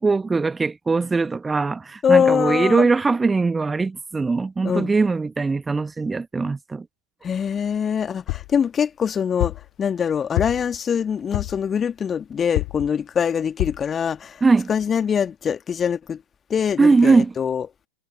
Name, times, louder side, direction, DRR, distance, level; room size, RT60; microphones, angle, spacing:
voice 1, 0.0-6.8 14.4-14.7 16.8-17.3, right 4 dB, 10° right, 1.0 m, -20 dB
voice 2, 2.0-2.9 4.6-4.9 7.2-14.4 14.7-16.2 16.5-17.7, left 7 dB, 20° left, 1.7 m, -23 dB
sound 1, 8.3-8.6 9.4-9.7 10.4-10.8 11.3-11.7 12.6-12.9 13.6-13.9 14.5-14.6 14.8-14.9, left 33 dB, 45° left, 2.7 m, -27 dB
figure-of-eight pair, 90°, 0 cm